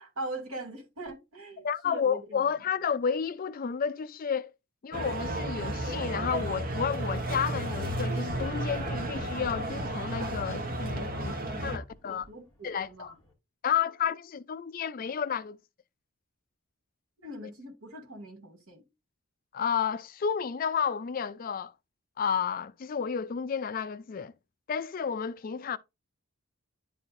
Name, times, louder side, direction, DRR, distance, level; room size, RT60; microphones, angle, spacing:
voice 1, 0.0-2.4 12.1-13.1 17.2-18.8, right 2 dB, 75° right, 2.3 m, -41 dB
voice 2, 1.6-4.5 4.8-11.3 11.6-12.3 12.6-13.1 13.6-15.6 19.5-21.7 22.2-24.3 24.7-25.8, left 7 dB, 40° left, 0.3 m, -31 dB
sound 1, 4.9-11.8, right 1 dB, 40° right, 1.0 m, -33 dB
Fireworks, 8.3-13.3, left 2 dB, 20° left, 2.2 m, -48 dB
10.5 x 4.2 x 2.5 m
head